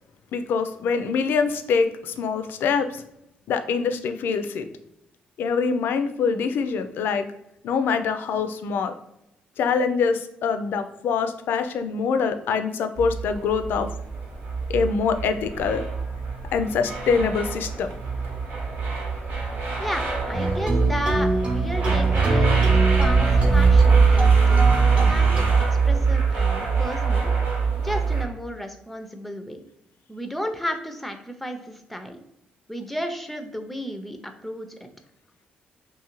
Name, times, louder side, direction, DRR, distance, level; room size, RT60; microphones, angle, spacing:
voice 1, 0.3-3.0 3.5-4.7 5.4-7.3 7.6-8.9 9.6-13.9 14.7-15.8 16.5-17.9, left 5 dB, 70° left, 9 dB, 0.3 m, -24 dB
sound 1, 13.0-28.2, right 5 dB, 65° right, 0.8 m, -22 dB
voice 2, 19.8-27.3 27.8-29.6 30.1-32.2 32.7-34.9, equal, 5° left, 6 dB, 0.4 m, -33 dB
sound 2, 20.3-25.4, right 2 dB, 35° right, 0.7 m, -25 dB
2.6 x 2.4 x 2.9 m, 0.82 s
supercardioid pair, 70°, 4 cm